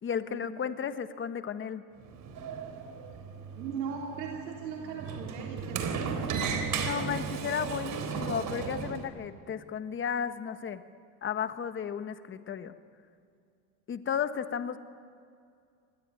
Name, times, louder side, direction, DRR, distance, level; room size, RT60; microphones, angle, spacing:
voice 1, 0.0-1.8 6.8-10.8 11.2-12.7 13.9-14.8, left 7 dB, 25° left, 10 dB, 1.4 m, -34 dB
Sliding door, 2.0-9.0, right 6 dB, 40° right, 3.8 m, -35 dB
voice 2, 3.6-6.9, right 6 dB, 85° right, -1 dB, 3.5 m, -39 dB
27.0 x 20.0 x 9.6 m, 2.2 s
supercardioid pair, 115°, 48 cm